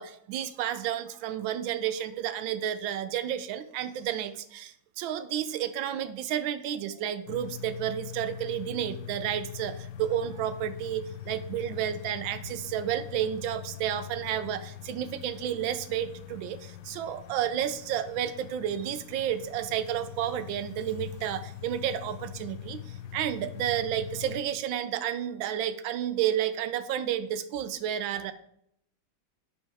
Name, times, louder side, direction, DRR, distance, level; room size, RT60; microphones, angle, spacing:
voice 1, 0.0-28.3, right 10 dB, 80° right, 12 dB, 1.4 m, -31 dB
sound 1, 7.3-24.4, left 11 dB, 70° left, 1.0 m, -43 dB
10.0 x 5.6 x 3.3 m, 0.73 s
omnidirectional pair, 2.1 m